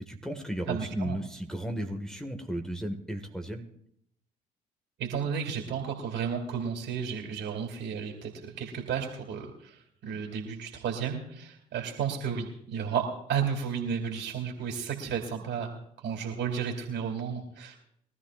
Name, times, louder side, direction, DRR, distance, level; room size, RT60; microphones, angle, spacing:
voice 1, 0.0-3.7, right 1 dB, 5° left, 4 dB, 1.9 m, -34 dB
voice 2, 0.7-1.2 5.0-15.8 16.0-17.8, right 7 dB, 65° right, 1 dB, 2.9 m, -33 dB
23.0 x 13.5 x 2.6 m, 0.72 s
hypercardioid pair, 50°, 20 cm